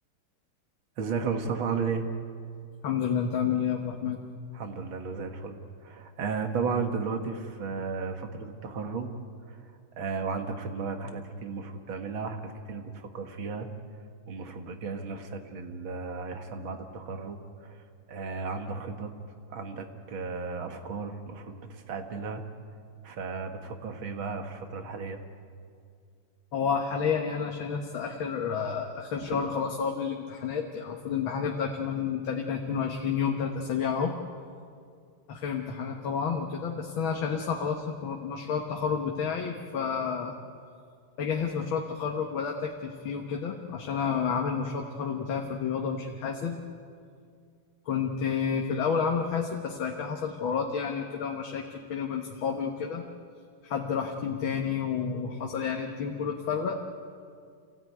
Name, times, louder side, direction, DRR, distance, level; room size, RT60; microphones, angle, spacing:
voice 1, 1.0-2.1 4.5-9.1 9.5-9.6 10.0-13.7 14.3-17.8 18.1-19.1 19.5-22.4 23.0-25.2 29.3-29.4, right 5 dB, 85° right, 6 dB, 2.4 m, -34 dB
voice 2, 2.8-4.2 26.5-34.1 35.3-40.3 41.2-46.6 47.9-53.0 53.6-56.8, left 6 dB, 85° left, 2 dB, 2.1 m, -30 dB
26.5 x 17.0 x 9.3 m, 2.2 s
omnidirectional pair, 2.1 m